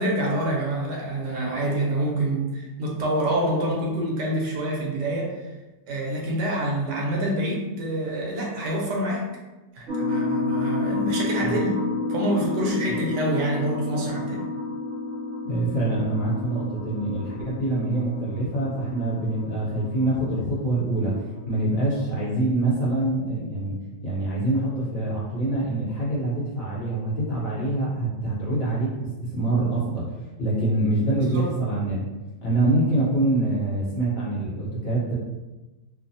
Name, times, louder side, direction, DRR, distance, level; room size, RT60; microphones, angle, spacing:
voice 1, 0.0-5.5 5.9-9.3 9.7-11.8 12.1-14.5 31.3-31.5, right 1 dB, 80° right, -2 dB, 1.3 m, -26 dB
sound 1, 9.9-22.3, left 2 dB, 60° right, 0.9 m, -31 dB
voice 2, 15.4-21.1 21.5-23.8 24.0-30.0 30.4-32.0 32.4-35.1, right 2 dB, 60° left, -6 dB, 1.1 m, -25 dB
3.1 x 2.0 x 2.6 m, 1.1 s
omnidirectional pair, 1.8 m